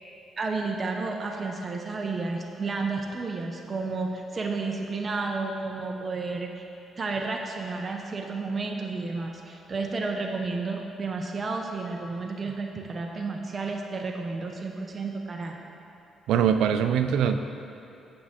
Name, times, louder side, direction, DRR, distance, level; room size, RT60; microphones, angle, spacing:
voice 1, 0.4-6.7 7.0-15.5, right 3 dB, 35° right, 2 dB, 0.7 m, -31 dB
voice 2, 16.3-17.4, right 8 dB, 85° right, 8 dB, 0.4 m, -22 dB
8.8 x 7.3 x 3.7 m, 2.8 s
cardioid pair, 90°, 0 cm